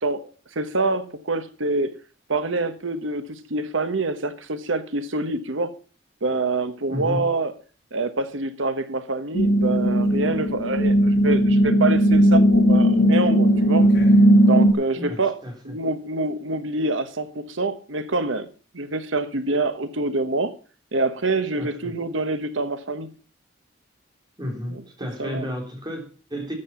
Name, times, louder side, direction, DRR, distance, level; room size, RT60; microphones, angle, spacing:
voice 1, 0.0-1.9 2.3-5.7 6.2-7.5 7.9-13.8 14.5-15.4 15.6-18.5 18.7-20.5 20.9-23.1 24.7-24.8 25.2-25.5, right 3 dB, 80° right, 1.2 m, -26 dB
voice 2, 6.9-7.3 14.9-15.8 21.6-21.9 24.4-26.5, left 1 dB, 20° right, 3.4 m, -32 dB
sound 1, 9.3-14.7, equal, 65° left, 4.9 m, -17 dB
13.0 x 7.8 x 5.7 m
head